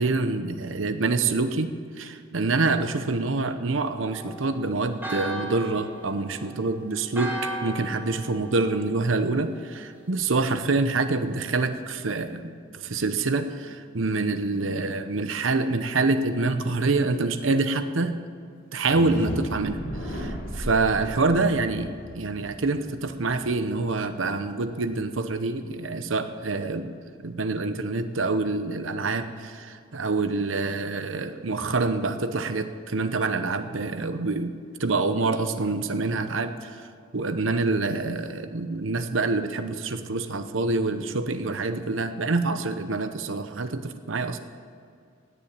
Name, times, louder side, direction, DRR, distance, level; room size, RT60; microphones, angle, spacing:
voice 1, 0.0-18.1 18.7-26.9 27.2-34.5 34.8-36.9 37.1-44.4, right 3 dB, 80° right, 9 dB, 0.8 m, -26 dB
Church bell, 4.0-9.7, right 1 dB, 10° right, 1.8 m, -37 dB
sound 1, 18.8-24.6, equal, 65° left, 2.6 m, -36 dB
17.5 x 7.1 x 8.8 m, 2.3 s
head